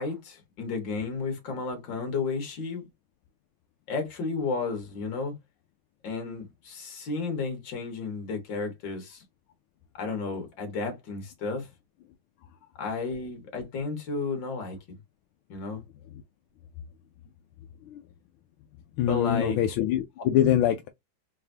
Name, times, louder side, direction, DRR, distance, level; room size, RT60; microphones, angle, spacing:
voice 1, 0.0-2.8 3.9-5.3 6.0-9.2 10.0-11.7 12.8-15.0 15.5-15.8 19.1-19.6, left 4 dB, 65° left, 2.1 m, -32 dB
voice 2, 19.0-20.9, left 11 dB, 85° left, 1.4 m, -24 dB
4.0 x 3.4 x 2.7 m
omnidirectional pair, 2.2 m